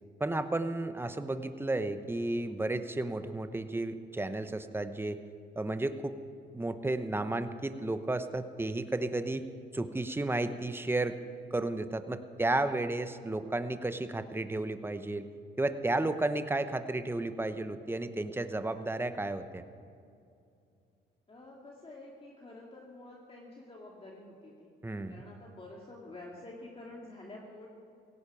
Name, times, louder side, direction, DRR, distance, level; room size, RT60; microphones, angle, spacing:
voice 1, 0.2-5.2 5.6-6.1 6.5-9.4 9.7-11.2 11.5-15.3 15.6-19.6 24.8-25.2, right 2 dB, 10° right, 10 dB, 0.9 m, -33 dB
voice 2, 21.3-24.7 25.1-27.7, left 2 dB, 30° left, -2 dB, 2.2 m, -49 dB
17.0 x 16.5 x 4.9 m, 2.5 s
cardioid pair, 90°, 20 cm